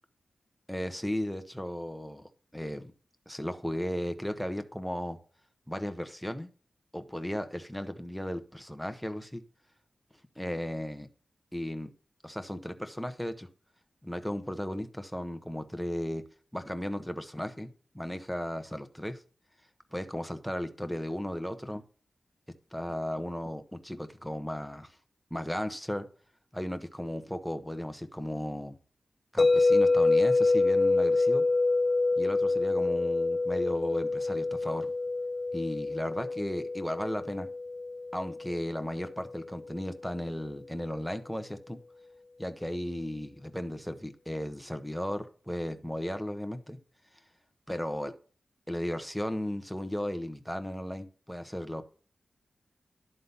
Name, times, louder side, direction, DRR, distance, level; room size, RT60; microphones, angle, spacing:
voice 1, 0.7-2.9 3.3-5.2 5.7-6.5 6.9-9.4 10.4-11.1 11.5-11.9 12.2-13.5 14.0-16.2 16.5-17.7 17.9-19.2 19.9-21.8 22.7-25.0 25.3-26.1 26.5-28.7 29.3-31.4 32.2-34.9 35.5-37.5 38.1-41.8 42.4-46.8 47.7-48.1 48.7-51.8, equal, ahead, 1.2 m, -35 dB
sound 1, 29.4-39.5, left 3 dB, 45° left, 0.5 m, -27 dB
11.5 x 3.9 x 5.5 m
cardioid pair, 45°, 0 cm